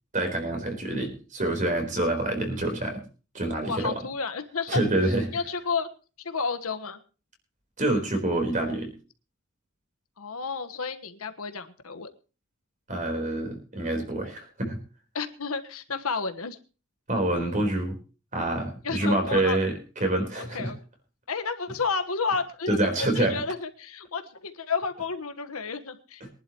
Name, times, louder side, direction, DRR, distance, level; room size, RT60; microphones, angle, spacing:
voice 1, 0.1-3.0 3.3-3.9 4.7-5.3 7.8-8.9 12.9-14.8 17.1-18.0 18.3-20.7 22.7-23.4 26.2-26.3, right 1 dB, 35° right, 4 dB, 4.1 m, -27 dB
voice 2, 3.7-5.9 6.2-7.0 10.2-12.1 15.1-16.6 18.8-19.6 20.3-20.8 21.3-26.2, left 4 dB, 80° left, 9 dB, 1.4 m, -31 dB
23.5 x 11.0 x 3.0 m, 0.35 s
head